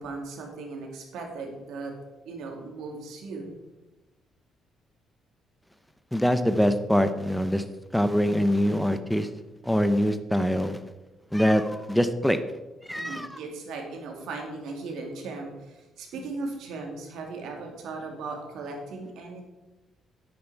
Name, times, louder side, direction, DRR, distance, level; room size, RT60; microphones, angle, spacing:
voice 1, 0.0-1.9 2.3-3.6 12.9-19.4, right 3 dB, 80° right, 1 dB, 2.4 m, -37 dB
voice 2, 6.1-7.6 7.9-9.3 9.6-10.8 11.3-12.4 12.9-13.4, equal, ahead, 10 dB, 0.8 m, -24 dB
10.0 x 8.2 x 4.6 m, 1.1 s
cardioid pair, 115°, 0 cm